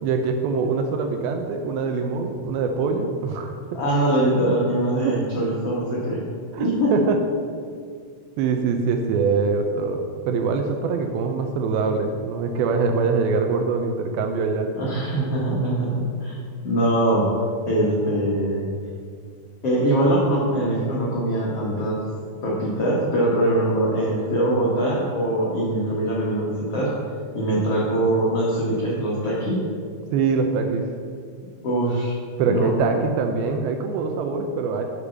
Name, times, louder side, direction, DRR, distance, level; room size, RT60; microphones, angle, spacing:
voice 1, 0.0-3.5 5.0-5.2 6.5-7.2 8.4-14.7 30.1-30.9 32.4-34.8, right 4 dB, 85° right, 4 dB, 2.1 m, -23 dB
voice 2, 3.7-6.2 6.6-6.9 14.7-16.3 16.6-17.3 17.6-18.7 19.6-22.0 22.4-26.9 27.3-29.6 31.6-32.1 32.5-32.7, right 1 dB, 70° left, -5 dB, 1.4 m, -22 dB
8.2 x 5.1 x 7.1 m, 2.1 s
omnidirectional pair, 4.8 m